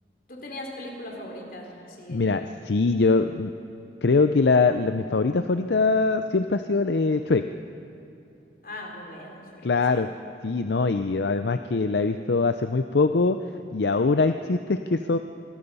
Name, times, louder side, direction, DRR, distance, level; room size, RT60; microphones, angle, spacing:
voice 1, 0.3-2.5 8.6-10.0, left 1 dB, 55° left, 1 dB, 3.8 m, -40 dB
voice 2, 2.1-3.5 4.0-7.5 9.6-10.1 10.4-13.4 13.7-15.2, left 3 dB, 75° left, 9 dB, 0.6 m, -22 dB
25.5 x 20.0 x 5.5 m, 2.8 s
head